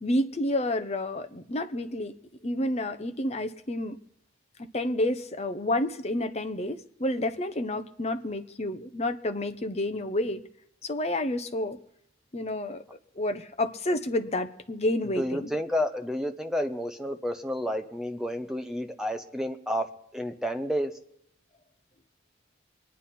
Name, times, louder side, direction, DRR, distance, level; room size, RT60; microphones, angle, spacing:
voice 1, 0.0-2.2 2.4-4.0 4.7-10.4 10.8-11.8 12.3-12.8 13.2-15.5, left 1 dB, 35° left, 9 dB, 0.8 m, -29 dB
voice 2, 15.2-20.9, equal, 5° right, 5 dB, 0.9 m, -30 dB
23.5 x 9.9 x 4.3 m, 0.76 s
head